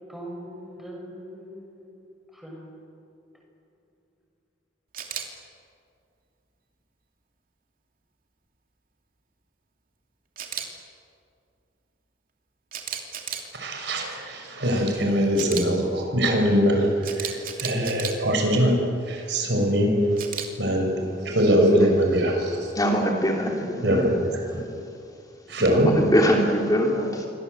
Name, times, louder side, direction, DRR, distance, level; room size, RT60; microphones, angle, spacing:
voice 1, 0.1-2.1 2.3-2.7, equal, ahead, -1 dB, 6.5 m, -41 dB
Camera, 4.9-5.2 10.4-10.7 12.7-13.5 15.3-15.6 17.0-18.1 20.2-20.5, right 8 dB, 50° right, 3.0 m, -33 dB
voice 2, 13.5-18.8 19.0-20.3 20.6-22.7 23.8-24.6 25.5-26.0, equal, 65° right, 2 dB, 5.9 m, -22 dB
voice 3, 22.7-24.0 24.5-24.8 25.7-27.3, equal, 20° left, 0 dB, 3.2 m, -23 dB
28.0 x 24.5 x 8.1 m, 2.5 s
head